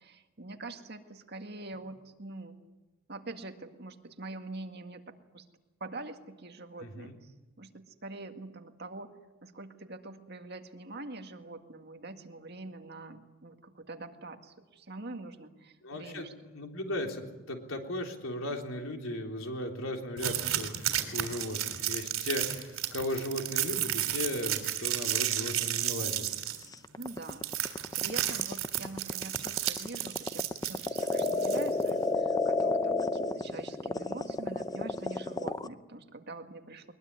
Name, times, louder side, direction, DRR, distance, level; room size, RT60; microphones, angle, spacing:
voice 1, 0.0-2.6 3.1-5.5 5.8-9.1 9.4-16.3 27.0-30.4 30.7-36.9, right 2 dB, 55° right, 5 dB, 2.0 m, -44 dB
voice 2, 6.8-7.2 15.8-16.3 16.5-26.3, left 1 dB, 85° left, 3 dB, 3.6 m, -36 dB
Sellotape noise, 20.2-31.9, right 12 dB, 85° right, 3.5 m, -33 dB
sound 1, 26.7-35.7, left 2 dB, 20° left, 0.7 m, -30 dB
22.0 x 21.5 x 9.7 m, 1.1 s
head